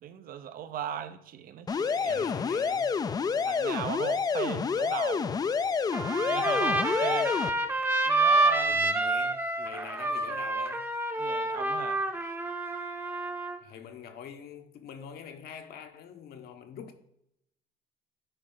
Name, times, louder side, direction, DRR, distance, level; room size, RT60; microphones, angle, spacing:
voice 1, 0.0-2.2 3.3-5.4 6.2-7.3 8.1-9.0 11.2-12.0, right 10 dB, 60° right, 0.7 m, -38 dB
sound 1, 1.7-7.5, left 5 dB, 25° left, 0.3 m, -28 dB
voice 2, 2.0-3.0 8.7-10.9 13.6-17.0, left 7 dB, 65° left, 1.1 m, -45 dB
Trumpet, 5.9-13.6, right 2 dB, 10° right, 0.8 m, -28 dB
9.9 x 4.3 x 3.9 m
cardioid pair, 110°, 17 cm